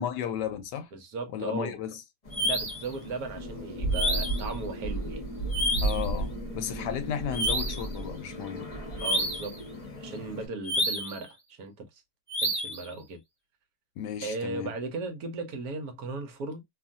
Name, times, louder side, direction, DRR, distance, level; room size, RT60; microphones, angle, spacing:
voice 1, 0.0-0.9 1.3-2.0 5.8-8.7 14.0-14.7, left 8 dB, 80° left, 1.2 m, -34 dB
voice 2, 0.9-1.7 2.4-5.3 9.0-9.6 10.0-11.9 12.4-13.2 14.2-16.6, right 3 dB, 65° right, 1.1 m, -36 dB
sound 1, 2.2-10.5, right 2 dB, 25° left, 0.9 m, -35 dB
sound 2, 2.3-2.9 3.9-4.5 5.5-6.1 7.3-7.9 9.0-9.5 10.6-11.2 12.3-12.9, equal, 10° right, 1.2 m, -29 dB
sound 3, 3.3-9.8, left 1 dB, 25° right, 0.8 m, -43 dB
2.9 x 2.4 x 2.5 m
omnidirectional pair, 1.9 m